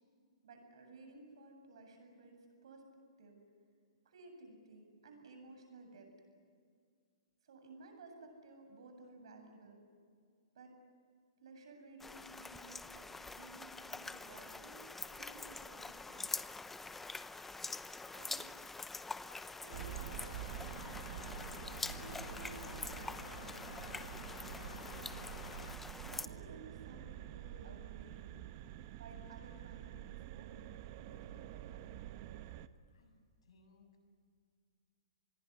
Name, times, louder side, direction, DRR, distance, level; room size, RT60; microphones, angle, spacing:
voice 1, 0.4-2.9 3.2-3.4 4.0-6.1 7.4-9.8 10.5-10.8 11.4-14.9 15.1-16.4 18.1-18.6 19.6-21.0 21.9-24.3 24.9-25.2 26.0-28.4 29.0-32.1, right 3 dB, 70° right, 5 dB, 8.0 m, -56 dB
sound 1, 12.0-26.3, left 3 dB, 5° left, 0.8 m, -45 dB
sound 2, 19.7-25.8, left 5 dB, 90° left, 0.9 m, -52 dB
sound 3, 19.7-32.7, right 13 dB, 45° right, 1.1 m, -48 dB
voice 2, 32.9-33.9, left 3 dB, 70° left, 4 dB, 7.9 m, -67 dB
26.5 x 21.5 x 9.8 m, 2.1 s
hypercardioid pair, 130°, 3 cm